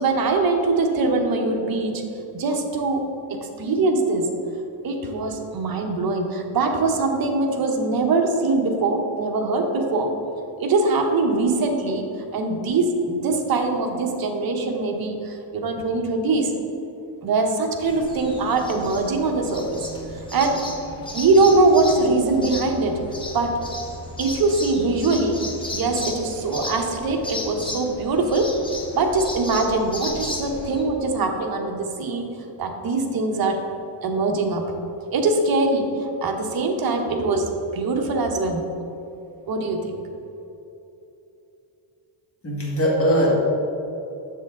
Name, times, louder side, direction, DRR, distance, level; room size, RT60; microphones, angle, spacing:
voice 1, 0.0-1.9 2.3-4.3 4.8-10.1 10.6-12.1 12.3-16.5 17.2-19.8 20.3-20.6 21.1-23.0 23.3-23.6 24.2-25.4 25.7-28.5 28.9-32.3 32.6-33.6 34.0-34.7 35.1-38.6 39.5-39.9, right 3 dB, 45° right, 3 dB, 1.0 m, -22 dB
sound 1, 17.8-30.8, left 1 dB, 10° left, 0.9 m, -35 dB
voice 2, 42.4-43.4, equal, 30° left, -3 dB, 1.8 m, -20 dB
7.2 x 7.2 x 3.7 m, 2.9 s
cardioid pair, 130°, 48 cm